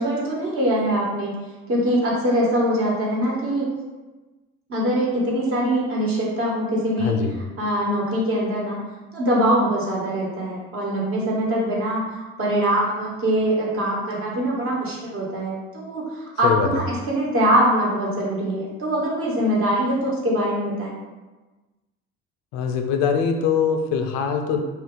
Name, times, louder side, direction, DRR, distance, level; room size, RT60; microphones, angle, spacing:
voice 1, 0.0-1.3 1.7-3.7 4.7-8.8 9.1-20.9, right 1 dB, 45° right, -4 dB, 1.2 m, -23 dB
voice 2, 7.0-7.3 16.4-16.8 22.5-24.6, left 6 dB, 75° left, 4 dB, 0.5 m, -22 dB
2.5 x 2.3 x 3.7 m, 1.2 s
hypercardioid pair, 70°, 32 cm